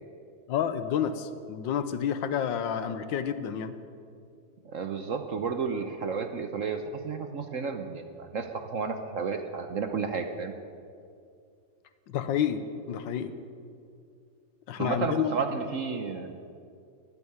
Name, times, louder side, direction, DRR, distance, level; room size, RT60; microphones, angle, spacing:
voice 1, 0.5-3.7 12.1-13.3 14.7-15.3, left 8 dB, 80° left, 11 dB, 1.5 m, -29 dB
voice 2, 4.6-10.5 14.8-16.4, right 5 dB, 55° right, 6 dB, 1.0 m, -32 dB
14.0 x 9.4 x 9.6 m, 2.3 s
omnidirectional pair, 2.0 m